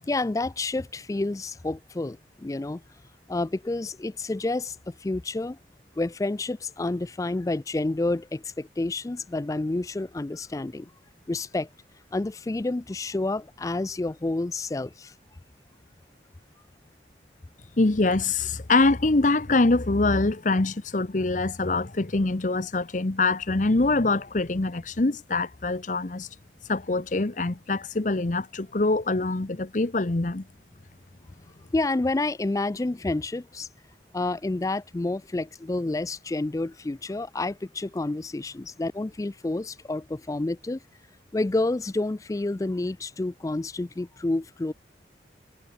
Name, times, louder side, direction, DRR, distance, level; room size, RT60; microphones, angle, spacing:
voice 1, 0.1-2.8 3.3-5.6 6.0-10.9 11.3-11.7 12.1-15.1 31.7-33.7 34.1-40.8 41.3-44.7, left 2 dB, 20° left, 0.3 m, -29 dB
voice 2, 17.8-26.3 26.7-30.5, left 2 dB, 45° left, 0.9 m, -24 dB
head